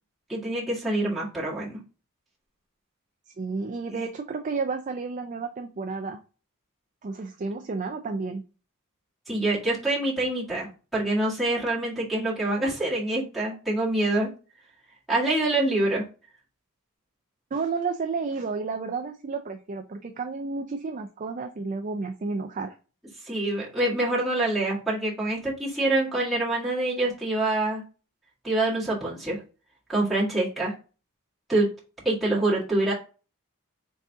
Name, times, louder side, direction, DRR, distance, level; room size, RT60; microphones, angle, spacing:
voice 1, 0.3-1.8 4.0-4.1 9.3-10.7 10.9-14.3 15.1-16.0 23.2-27.8 28.4-29.4 29.9-30.7 31.5-31.7 32.0-32.9, right 2 dB, ahead, -8 dB, 1.8 m, -25 dB
voice 2, 3.4-6.2 7.0-8.4 17.5-22.7, right 4 dB, 35° right, 6 dB, 0.4 m, -31 dB
4.1 x 3.7 x 3.4 m, 0.34 s
head